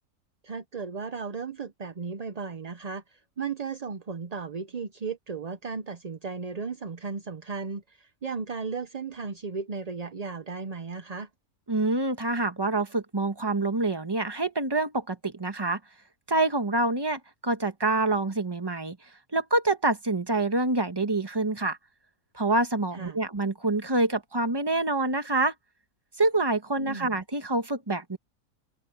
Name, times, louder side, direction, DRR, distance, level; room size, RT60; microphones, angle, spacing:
voice 1, 0.4-11.3 22.9-23.3 26.8-27.1, right 5 dB, 40° right, 0.6 m, -35 dB
voice 2, 11.7-15.8 16.3-19.0 19.3-21.8 22.3-25.5 26.2-28.2, right 2 dB, 15° right, 1.2 m, -26 dB
open air
omnidirectional pair, 1.6 m